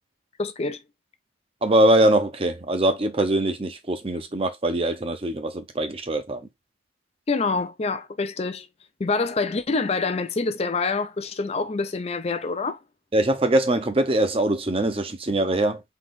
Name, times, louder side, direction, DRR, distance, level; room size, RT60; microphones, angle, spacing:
voice 1, 0.4-0.8 7.3-8.7 9.0-12.8, left 3 dB, 30° left, 0.4 m, -26 dB
voice 2, 1.6-6.5 13.1-15.8, right 1 dB, 30° right, 0.7 m, -22 dB
3.9 x 3.0 x 3.5 m
head